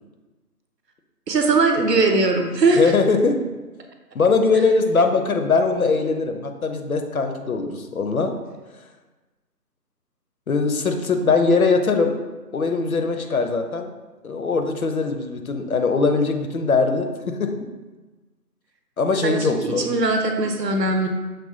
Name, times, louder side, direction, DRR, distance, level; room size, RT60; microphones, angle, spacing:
voice 1, 1.3-2.9 19.2-21.1, right 3 dB, 75° right, 4 dB, 0.8 m, -20 dB
voice 2, 2.7-3.4 4.1-8.4 10.5-12.2 12.5-13.9 14.2-17.6 19.0-19.9, left 4 dB, 60° left, 6 dB, 0.5 m, -21 dB
6.2 x 2.2 x 3.6 m, 1.2 s
figure-of-eight pair, 160°, 49 cm